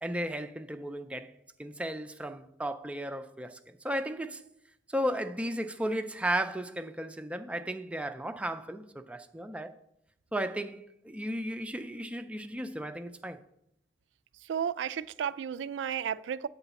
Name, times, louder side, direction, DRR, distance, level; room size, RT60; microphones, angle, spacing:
voice 1, 0.0-1.3 1.6-4.4 4.9-9.7 10.3-13.4, right 1 dB, 5° right, 0.4 m, -35 dB
voice 2, 14.4-16.5, right 8 dB, 80° right, 0.3 m, -33 dB
8.0 x 4.0 x 6.9 m
head